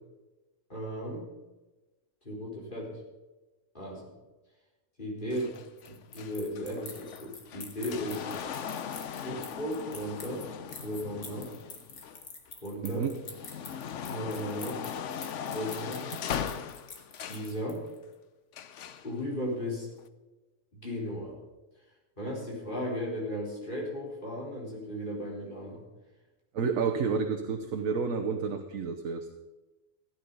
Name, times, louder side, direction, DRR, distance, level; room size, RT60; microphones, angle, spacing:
voice 1, 0.7-1.2 2.2-3.0 3.7-4.1 5.0-5.5 5.9-8.3 9.2-10.4 10.8-11.5 12.6-13.1 14.1-14.8 15.5-16.0 17.2-17.8 19.0-19.9 20.7-21.4 22.2-25.8, equal, 35° left, -4 dB, 4.5 m, -36 dB
sound 1, 5.3-12.5 13.0-17.6 18.5-19.1 20.0-20.1, left 8 dB, 60° left, 1.0 m, -39 dB
sound 2, 5.4-18.0, left 4 dB, 75° left, 2.3 m, -46 dB
voice 2, 26.5-29.3, right 5 dB, 65° right, 4 dB, 1.4 m, -30 dB
15.0 x 10.5 x 5.5 m, 1.1 s
omnidirectional pair, 1.6 m